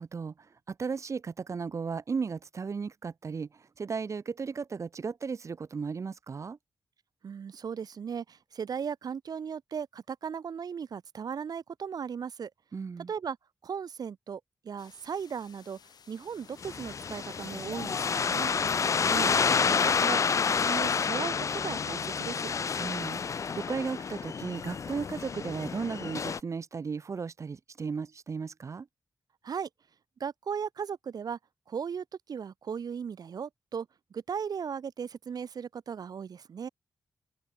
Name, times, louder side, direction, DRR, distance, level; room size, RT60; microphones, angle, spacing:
voice 1, 0.0-6.6 12.7-13.1 18.9-19.1 22.8-28.9, right 5 dB, 45° right, 1.4 m, -35 dB
voice 2, 7.2-12.5 13.1-13.4 13.6-15.8 16.1-18.5 19.1-20.2 20.4-22.4 29.4-29.7 30.2-31.4 31.7-36.7, right 7 dB, 65° right, 2.0 m, -37 dB
sound 1, 14.8-20.9, left 7 dB, 70° left, 4.0 m, -57 dB
sound 2, 16.6-26.4, left 6 dB, 45° left, 0.7 m, -29 dB
open air
wide cardioid pair, 135°, 7 cm